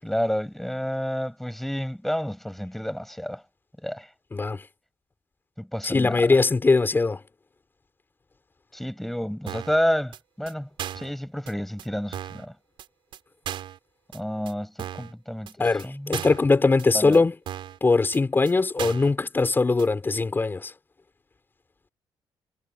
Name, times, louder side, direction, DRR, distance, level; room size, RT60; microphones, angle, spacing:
voice 1, 0.0-3.4 3.8-4.1 5.6-6.4 8.7-10.7 10.9-12.5 14.1-15.5 15.8-16.2 16.9-17.2, equal, 5° left, 7.7 m, -29 dB
voice 2, 4.3-4.6 5.8-7.2 15.6-17.3 17.8-20.7, left 3 dB, 25° left, 6.0 m, -21 dB
sound 1, 9.5-9.8 10.1-10.2 10.5-10.6 10.8-11.1 11.5-11.6 11.8-11.9 12.1-12.5 12.8-12.9 13.1-13.2 13.5-13.8 14.1-14.2 14.5-14.6 14.8-15.1 15.5-15.6 15.8-15.9 16.1-16.5 16.8-16.9 17.1-17.2 17.5-17.8 18.1-18.2 18.5-18.6 18.8-19.1 19.5-19.6 19.8-19.9, right 11 dB, 75° right, 4.6 m, -36 dB
cardioid pair, 105°, 9 cm